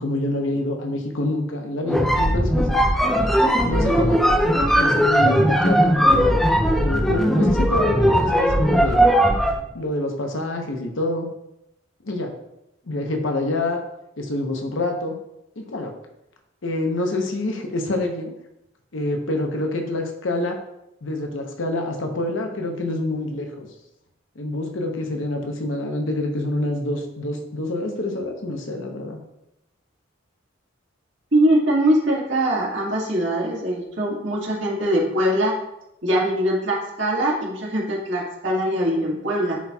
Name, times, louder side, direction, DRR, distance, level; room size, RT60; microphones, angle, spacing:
voice 1, 0.0-2.7 3.6-4.2 4.7-6.4 6.8-9.0 9.7-11.3 12.0-12.3 12.9-13.8 14.2-15.2 15.6-15.9 16.6-18.3 18.9-20.6 21.0-23.7 24.4-29.2, left 2 dB, 80° left, 3 dB, 0.9 m, -26 dB
sound 1, 1.8-9.6, equal, ahead, 0.4 m, -18 dB
voice 2, 31.3-35.5 36.0-39.6, right 1 dB, 70° right, -4 dB, 1.7 m, -22 dB
10.0 x 4.2 x 2.3 m, 0.86 s
head